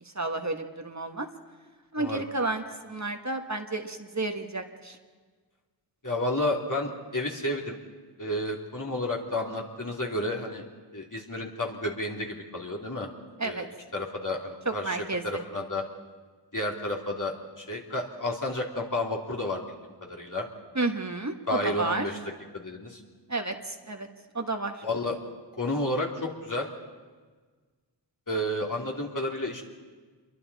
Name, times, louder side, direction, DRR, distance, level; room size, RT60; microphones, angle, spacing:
voice 1, 0.0-1.3 1.9-5.0 13.4-13.6 14.6-15.4 20.7-22.1 23.3-24.1 24.3-24.8, right 2 dB, 40° right, 5 dB, 1.5 m, -31 dB
voice 2, 6.0-7.8 8.2-10.6 10.9-13.1 13.4-13.7 13.9-15.0 15.2-15.8 16.5-20.5 21.5-22.1 22.5-23.0 24.8-25.1 25.6-26.7 28.3-29.6, left 1 dB, 45° left, -1 dB, 3.0 m, -31 dB
28.0 x 23.0 x 4.2 m, 1.5 s
wide cardioid pair, 50°, 44 cm